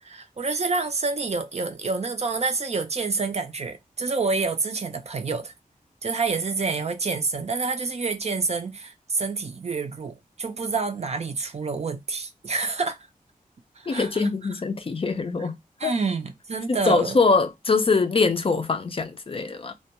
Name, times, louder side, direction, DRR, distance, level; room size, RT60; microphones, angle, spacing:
voice 1, 0.0-5.5 6.0-13.0 13.8-14.3 15.4-15.5 15.8-17.2, right 4 dB, 45° right, 0.4 m, -28 dB
voice 2, 13.9-15.6 15.8-15.9 16.7-19.7, left 4 dB, 40° left, 0.4 m, -23 dB
2.2 x 2.2 x 2.8 m
wide cardioid pair, 90°, 15 cm